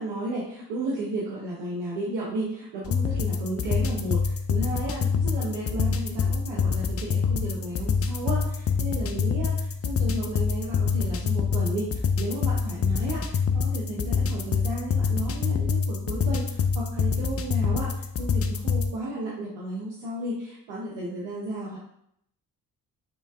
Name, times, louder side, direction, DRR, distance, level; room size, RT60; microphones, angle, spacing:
voice 1, 0.0-21.8, right 1 dB, 90° right, -4 dB, 0.8 m, -33 dB
sound 1, 2.8-18.9, left 5 dB, 40° left, 0.4 m, -26 dB
3.1 x 3.1 x 3.4 m, 0.72 s
supercardioid pair, 55°, 39 cm